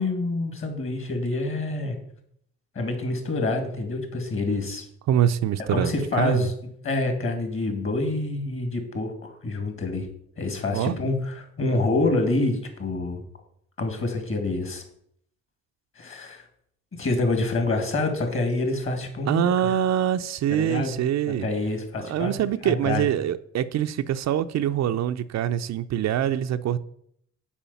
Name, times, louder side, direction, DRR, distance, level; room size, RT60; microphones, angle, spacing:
voice 1, 0.0-2.0 2.7-4.8 5.7-6.5 6.8-10.1 10.4-13.2 13.8-14.8 16.0-16.4 17.0-19.5 20.5-20.9 21.4-22.3 22.6-23.1, left 2 dB, 45° left, 2.3 m, -27 dB
voice 2, 5.1-6.5 10.7-11.0 19.3-21.5 22.1-26.8, right 10 dB, 60° right, 0.5 m, -24 dB
7.2 x 4.9 x 6.9 m
cardioid pair, 90°, 30 cm